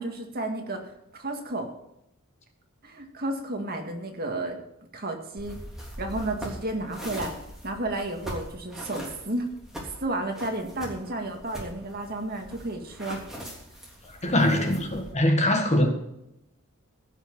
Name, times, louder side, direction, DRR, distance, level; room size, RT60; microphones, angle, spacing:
voice 1, 0.0-1.7 2.8-4.6 4.9-5.6 6.0-7.3 7.6-9.5 10.0-13.2, right 2 dB, 45° right, 3 dB, 1.9 m, -32 dB
sound 1, 5.4-15.1, equal, ahead, 3.2 m, -41 dB
voice 2, 14.2-15.9, left 1 dB, 30° left, 4 dB, 1.7 m, -22 dB
16.0 x 5.9 x 7.0 m, 0.82 s
head